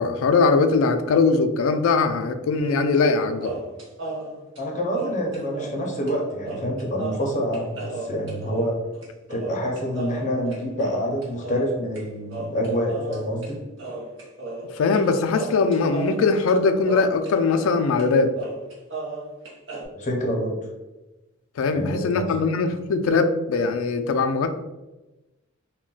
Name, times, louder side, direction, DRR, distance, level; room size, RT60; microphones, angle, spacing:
voice 1, 0.0-3.5 14.7-18.3 21.6-24.5, left 4 dB, 85° left, 7 dB, 0.3 m, -21 dB
sound 1, 2.6-3.1 3.4-5.8 6.1-6.2 6.4-12.0 12.3-13.5 13.8-15.1 15.3-17.7 18.0-18.1 18.4-19.9, right 2 dB, 65° right, 0.8 m, -35 dB
voice 2, 4.6-8.8 9.3-13.6 19.9-20.6 21.7-22.3, equal, 40° left, 0 dB, 0.6 m, -27 dB
2.3 x 2.1 x 3.7 m, 1.1 s
head